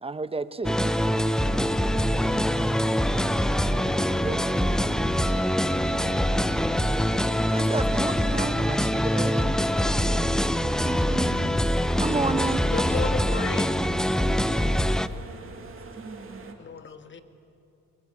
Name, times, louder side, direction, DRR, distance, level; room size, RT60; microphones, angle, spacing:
voice 1, 0.0-0.8 3.8-4.9 7.5-9.6 10.8-11.6 12.0-12.7 16.0-16.6, right 3 dB, 20° right, 13 dB, 0.9 m, -33 dB
sound 1, 0.6-15.1, equal, ahead, 0.7 m, -24 dB
sound 2, 0.8-16.5, right 5 dB, 45° right, 2.7 m, -42 dB
voice 2, 9.6-10.3 13.3-14.2, left 2 dB, 60° left, 2 dB, 6.5 m, -44 dB
voice 3, 12.6-13.8 16.6-17.2, left 5 dB, 40° left, 9 dB, 1.7 m, -33 dB
22.5 x 21.5 x 8.6 m, 2.7 s
cardioid pair, 90°, 30 cm